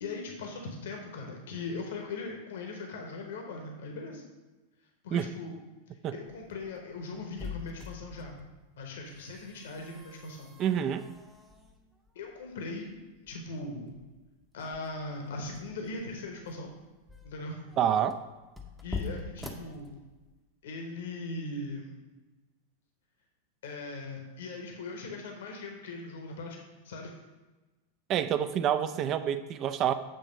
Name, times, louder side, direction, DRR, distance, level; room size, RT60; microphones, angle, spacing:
voice 1, 0.0-4.2 5.0-5.5 5.9-8.3 8.8-10.5 10.9-11.0 12.1-13.0 13.3-14.0 14.5-16.7 17.2-17.7 18.8-20.0 20.6-22.0 23.6-26.6 26.8-27.2, left 3 dB, 60° left, 2 dB, 0.9 m, -40 dB
sound 1, 6.3-20.4, left 4 dB, 5° right, 0.7 m, -45 dB
voice 2, 10.6-11.0 17.8-18.2 28.1-29.9, right 9 dB, 35° right, 12 dB, 0.4 m, -27 dB
7.7 x 3.4 x 5.0 m, 1.2 s
figure-of-eight pair, 90°, 0 cm